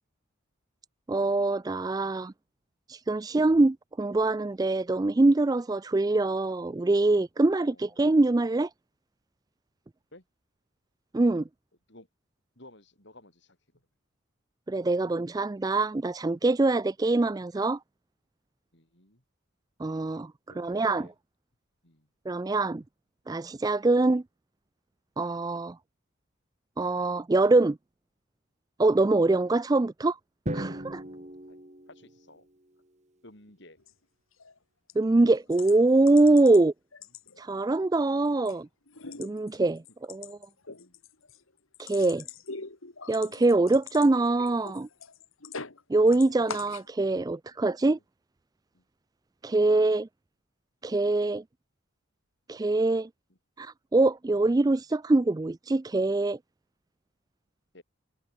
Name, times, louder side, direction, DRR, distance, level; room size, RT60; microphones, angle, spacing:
voice 1, 1.1-2.3 2.9-8.7 11.1-11.4 14.7-17.8 19.8-20.3 20.6-21.1 22.3-22.8 23.3-24.2 25.2-25.8 26.8-27.8 28.8-30.2 30.5-30.7 35.0-36.7 37.4-38.7 39.2-39.8 40.1-40.4 41.8-42.2 43.1-44.9 45.9-48.0 49.4-50.1 50.8-51.4 52.5-53.1 53.6-56.4, right 2 dB, 15° right, 0.3 m, -24 dB
voice 2, 7.6-8.0 10.1-10.2 11.9-12.1 12.6-13.9 18.7-19.2 20.5-21.1 21.8-22.1 30.6-30.9 31.5-31.6 31.9-32.5 33.2-33.8 40.8-41.0 47.8-48.0 48.7-48.8 53.3-53.4 57.7-57.8, left 1 dB, 55° left, 5.6 m, -54 dB
Drum, 30.5-32.6, right 1 dB, 30° right, 2.3 m, -37 dB
sound 1, 33.8-33.9 34.3-34.6 34.9-35.0 35.5-36.6 36.9-37.7 38.0-38.6 38.9-45.8 46.1-46.9, left 5 dB, 70° left, 2.2 m, -43 dB
head